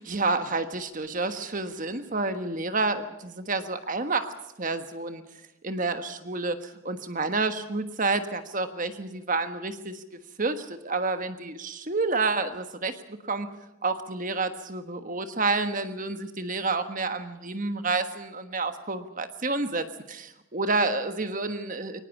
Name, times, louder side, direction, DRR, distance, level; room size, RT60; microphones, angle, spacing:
voice 1, 0.0-4.3 4.6-5.2 5.6-10.0 10.4-13.5 13.8-22.0, right 3 dB, 35° right, 9 dB, 1.3 m, -29 dB
24.0 x 19.0 x 7.2 m, 0.89 s
head